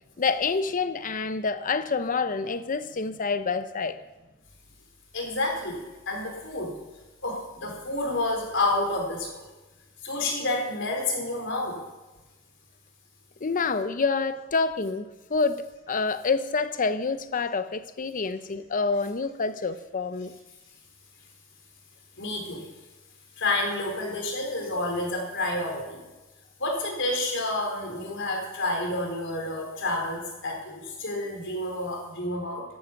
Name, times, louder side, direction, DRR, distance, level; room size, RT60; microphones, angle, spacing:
voice 1, 0.2-4.0 13.4-20.3, left 4 dB, 40° left, 0.6 m, -27 dB
voice 2, 5.1-6.8 7.2-9.5 10.0-11.8 22.2-22.7 23.4-26.0 26.6-32.6, left 2 dB, 60° left, 4.1 m, -29 dB
13.5 x 11.5 x 5.9 m
head